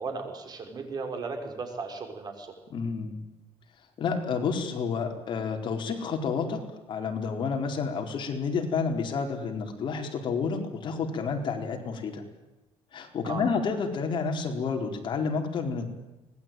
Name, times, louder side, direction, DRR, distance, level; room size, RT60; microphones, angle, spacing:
voice 1, 0.0-2.5 13.3-13.5, right 4 dB, 40° right, 5 dB, 5.5 m, -36 dB
voice 2, 2.7-3.2 4.0-6.6 6.9-12.2 12.9-15.8, left 5 dB, 50° left, 3 dB, 4.4 m, -30 dB
25.0 x 20.0 x 9.3 m, 1.0 s
cardioid pair, 135°, 11 cm